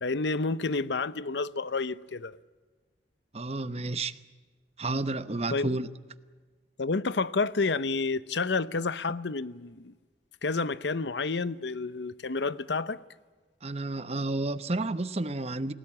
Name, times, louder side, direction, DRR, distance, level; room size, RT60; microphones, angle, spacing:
voice 1, 0.0-2.4 5.5-5.8 6.8-9.9 10.4-13.0, left 3 dB, 75° left, 0.8 m, -30 dB
voice 2, 3.3-4.2 4.8-5.9 13.6-15.7, right 2 dB, 35° right, 1.0 m, -31 dB
29.0 x 18.0 x 8.8 m
head